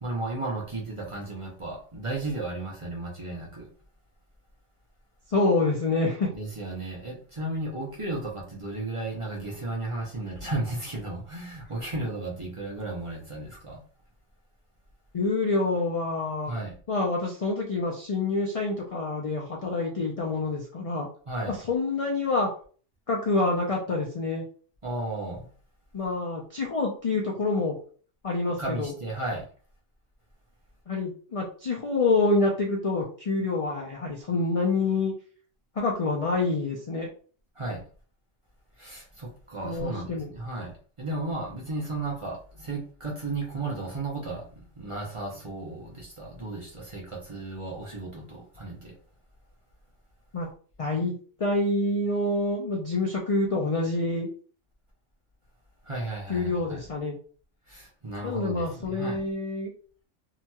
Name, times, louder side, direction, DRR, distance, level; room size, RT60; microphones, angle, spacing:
voice 1, 0.0-3.7 6.3-13.8 16.5-16.7 21.3-21.6 24.8-25.5 28.6-29.5 37.6-37.8 38.8-48.9 55.8-56.8 57.7-59.2, right 2 dB, 35° right, -3 dB, 0.6 m, -34 dB
voice 2, 5.3-6.3 15.1-16.5 16.9-21.1 21.5-22.5 23.1-24.4 25.9-27.7 28.2-28.9 30.9-35.1 35.8-37.1 39.6-40.3 50.3-50.5 50.8-54.3 56.3-57.2 58.2-59.7, left 3 dB, 60° left, -1 dB, 0.3 m, -27 dB
2.8 x 2.8 x 2.2 m, 0.43 s
omnidirectional pair, 1.2 m